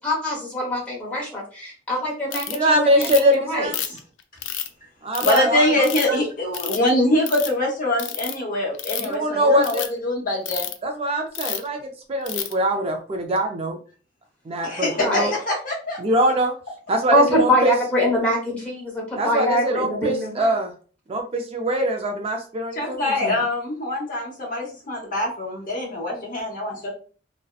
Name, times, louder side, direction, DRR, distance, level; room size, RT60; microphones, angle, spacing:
voice 1, 0.0-3.7 15.0-15.3 17.1-20.5, equal, 10° left, -4 dB, 0.9 m, -23 dB
Ratchet pawl, 2.3-2.6 3.0-3.3 3.7-4.7 5.1-5.4 5.8-6.2 6.5-6.9 7.2-7.5 8.0-8.3 8.7-9.1 9.6-9.9 10.5-10.7 11.3-11.7 12.3-12.5, left 10 dB, 85° left, 0.4 m, -29 dB
voice 2, 2.5-3.8 5.0-6.2 9.0-9.8 10.8-13.8 14.5-15.3 16.0-16.5 16.9-17.7 19.2-20.7 21.1-23.3, right 1 dB, 30° right, 3 dB, 0.3 m, -23 dB
voice 3, 5.2-10.7 14.6-16.0 22.7-26.9, left 1 dB, 50° left, -2 dB, 0.9 m, -24 dB
2.7 x 2.0 x 2.3 m, 0.39 s
head